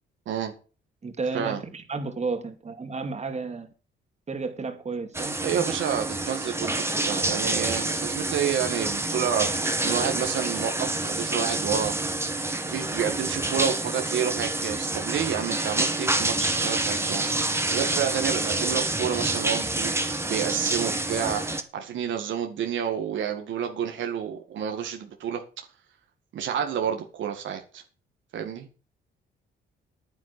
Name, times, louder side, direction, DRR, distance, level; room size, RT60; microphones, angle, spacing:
voice 1, 1.0-3.7 4.3-5.4, right 4 dB, 35° right, 2.6 m, -32 dB
sound 1, 5.1-21.6, right 2 dB, 15° right, 1.9 m, -27 dB
voice 2, 5.4-12.0 12.6-25.4 26.3-27.8 28.3-28.7, right 8 dB, 75° right, 1.9 m, -29 dB
9.7 x 9.3 x 6.8 m
cardioid pair, 90°, 20 cm